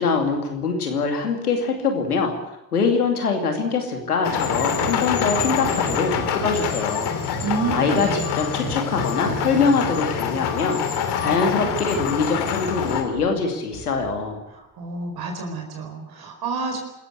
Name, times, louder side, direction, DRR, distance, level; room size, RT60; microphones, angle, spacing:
voice 1, 0.0-2.3 2.7-7.2 7.7-14.4, left 4 dB, 90° left, 3 dB, 2.6 m, -23 dB
sound 1, 4.2-13.0, left 8 dB, 60° left, 3.0 m, -26 dB
Hammer, 4.5-6.8 7.3-8.2 8.6-9.6 10.6-10.7 11.1-11.2 11.6-12.3 12.8-13.4 13.7-14.4, right 4 dB, 75° right, 6.7 m, -36 dB
voice 2, 7.4-8.4 14.8-16.8, right 4 dB, 55° right, 3 dB, 4.5 m, -29 dB
25.5 x 14.5 x 8.3 m, 0.94 s
figure-of-eight pair, 50°, 43 cm